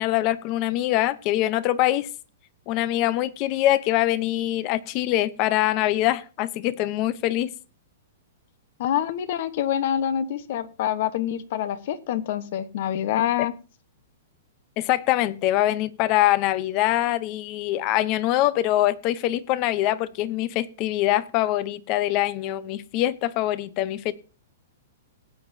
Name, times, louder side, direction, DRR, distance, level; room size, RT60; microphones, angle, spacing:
voice 1, 0.0-2.1 2.7-7.5 14.8-24.1, left 14 dB, 35° left, 0.8 m, -23 dB
voice 2, 8.8-13.5, left 10 dB, 55° left, 1.2 m, -26 dB
18.5 x 9.0 x 2.8 m
hypercardioid pair, 145°, 0 cm